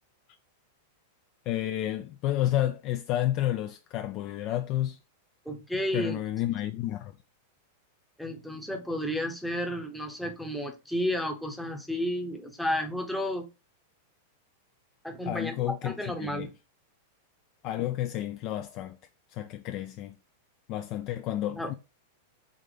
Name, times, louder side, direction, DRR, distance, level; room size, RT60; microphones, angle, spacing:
voice 1, 1.5-5.0 5.9-7.1 15.2-15.9 16.2-16.5 17.6-19.0 19.3-20.2 20.7-21.7, left 13 dB, 40° left, 0.4 m, -30 dB
voice 2, 5.5-6.2 8.2-13.5 15.0-15.5 15.8-16.5 21.6-21.7, equal, ahead, 0.8 m, -32 dB
5.0 x 2.8 x 3.8 m
supercardioid pair, 155°, 0 cm